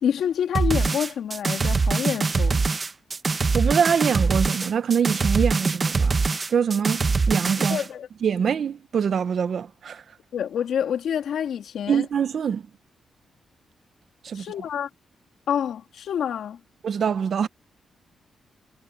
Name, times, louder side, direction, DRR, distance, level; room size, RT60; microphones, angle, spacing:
voice 1, 0.0-2.6 7.7-8.1 10.3-12.0 14.3-14.9 15.5-16.6, left 8 dB, 80° left, 3.2 m, -27 dB
sound 1, 0.5-7.9, right 4 dB, 30° right, 0.9 m, -23 dB
voice 2, 3.5-6.1 6.5-7.8 8.2-10.0 11.9-12.6 14.2-14.5 16.8-17.5, right 7 dB, 55° right, 0.8 m, -24 dB
wide cardioid pair, 135°, 0 cm